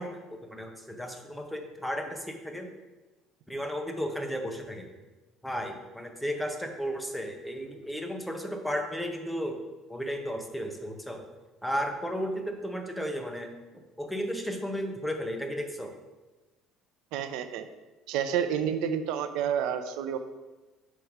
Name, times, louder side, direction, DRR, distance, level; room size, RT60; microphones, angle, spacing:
voice 1, 0.0-2.7 3.5-4.9 5.4-9.6 9.9-11.2 11.6-13.5 14.0-15.9, equal, ahead, 3 dB, 0.5 m, -34 dB
voice 2, 17.1-17.6 18.1-20.2, right 8 dB, 75° right, 10 dB, 0.4 m, -29 dB
5.4 x 4.8 x 4.6 m, 1.1 s
cardioid pair, 180°, 0 cm